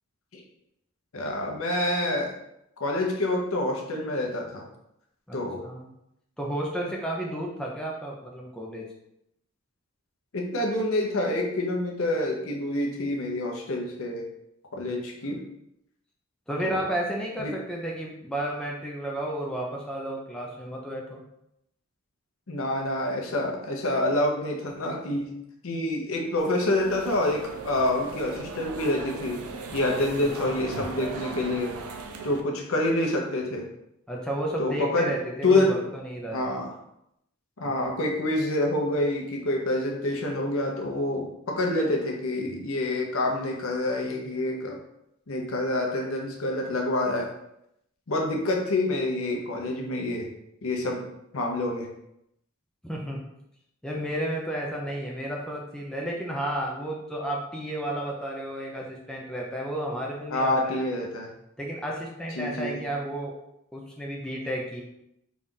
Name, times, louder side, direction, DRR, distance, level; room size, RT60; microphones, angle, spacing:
voice 1, 1.1-2.4 2.8-4.6 5.3-5.6 10.3-14.3 14.7-15.4 16.6-16.8 17.4-17.5 22.5-25.3 25.6-29.4 29.7-31.7 32.2-33.6 34.6-35.1 35.4-35.7 36.3-36.7 37.6-44.8 45.3-47.3 48.1-50.3 50.6-51.1 51.3-51.9 60.3-61.3 62.4-62.8, left 1 dB, 65° left, 1 dB, 0.7 m, -27 dB
voice 2, 5.3-5.9 6.4-8.9 14.9-15.0 15.2-15.4 16.5-21.2 30.2-30.5 34.1-36.5 37.6-37.7 52.8-53.2 53.8-60.9 61.6-63.3 63.7-64.8, right 1 dB, 5° left, -2 dB, 0.4 m, -32 dB
sound 1, 26.4-32.4, right 4 dB, 75° right, 0.5 m, -38 dB
4.0 x 2.4 x 3.7 m, 0.81 s
head